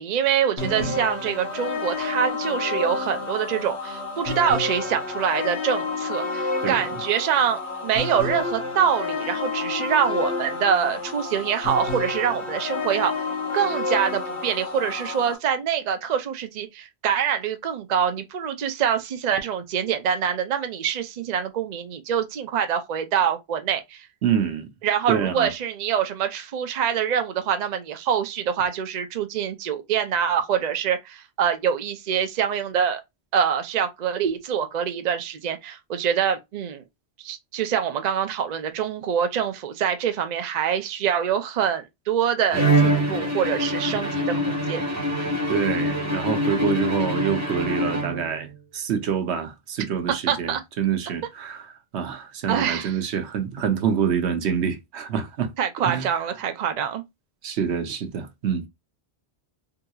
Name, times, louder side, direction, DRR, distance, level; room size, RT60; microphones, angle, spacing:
voice 1, 0.0-13.2 13.5-24.1 24.8-33.0 33.3-36.8 37.2-44.8 50.3-50.6 52.5-53.0 55.6-57.0, right 8 dB, 50° right, 0.6 m, -25 dB
sound 1, 0.6-15.4, left 3 dB, 80° left, 1.3 m, -29 dB
voice 2, 0.6-0.9 6.6-7.0 24.2-24.7 25.1-25.5 45.5-51.7 51.9-55.5 55.8-56.1 57.4-58.7, right 7 dB, 90° right, 1.0 m, -26 dB
Bowed string instrument, 42.5-48.5, right 1 dB, 15° right, 1.0 m, -24 dB
3.8 x 2.8 x 2.3 m
omnidirectional pair, 1.1 m